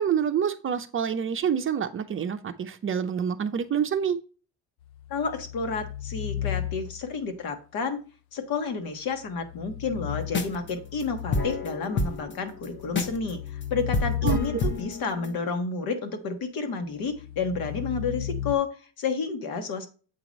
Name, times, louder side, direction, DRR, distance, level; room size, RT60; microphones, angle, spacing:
voice 1, 0.0-4.2 14.2-14.6, right 8 dB, 35° right, 0.5 m, -27 dB
sound 1, 4.9-7.2 9.3-11.9 12.5-15.0 17.0-18.6, left 11 dB, 80° left, 0.6 m, -35 dB
voice 2, 5.1-8.0 8.3-19.9, left 5 dB, 65° left, 1.4 m, -31 dB
sound 2, 10.2-10.7 11.0-11.1 11.3-13.3 13.6-13.7 13.9-15.4, left 2 dB, 30° left, 0.9 m, -28 dB
8.1 x 2.9 x 5.1 m
cardioid pair, 115°, 38 cm